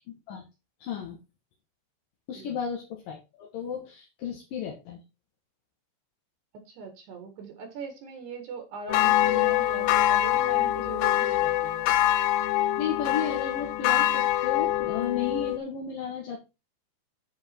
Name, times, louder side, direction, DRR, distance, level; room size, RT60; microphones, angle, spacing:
voice 1, 0.1-0.4 0.8-1.2 2.3-5.0 12.8-16.4, left 7 dB, 65° left, 0 dB, 2.4 m, -34 dB
voice 2, 6.7-11.9, right 5 dB, 65° right, 5 dB, 3.3 m, -41 dB
sound 1, 8.9-15.6, left 13 dB, 85° left, 2.5 m, -24 dB
10.0 x 5.1 x 4.4 m, 0.27 s
omnidirectional pair, 5.7 m